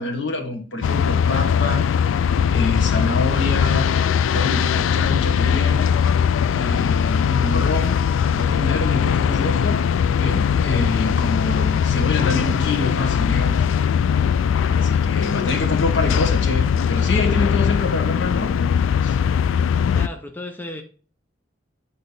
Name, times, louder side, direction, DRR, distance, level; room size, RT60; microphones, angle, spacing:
voice 1, 0.0-2.1 2.5-3.9 4.3-5.9 6.5-8.0 8.3-9.8 10.2-13.7 14.7-18.6 19.0-19.2, left 2 dB, 65° left, 1.4 m, -26 dB
sound 1, 0.8-20.1, left 7 dB, 85° left, 0.3 m, -20 dB
voice 2, 19.9-20.8, left 1 dB, 10° left, 0.6 m, -35 dB
8.2 x 3.9 x 4.0 m
head